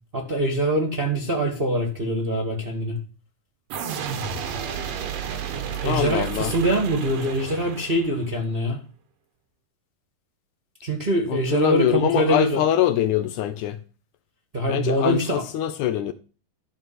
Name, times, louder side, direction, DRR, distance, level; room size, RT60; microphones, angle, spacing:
voice 1, 0.1-3.0 5.8-8.8 10.8-12.6 14.5-15.4, right 1 dB, 25° right, 1.3 m, -24 dB
sound 1, 3.7-8.4, right 7 dB, 85° right, 3.0 m, -32 dB
voice 2, 5.8-6.5 11.3-13.8 14.7-16.1, left 11 dB, 75° left, 2.0 m, -23 dB
12.5 x 4.8 x 7.8 m
omnidirectional pair, 3.8 m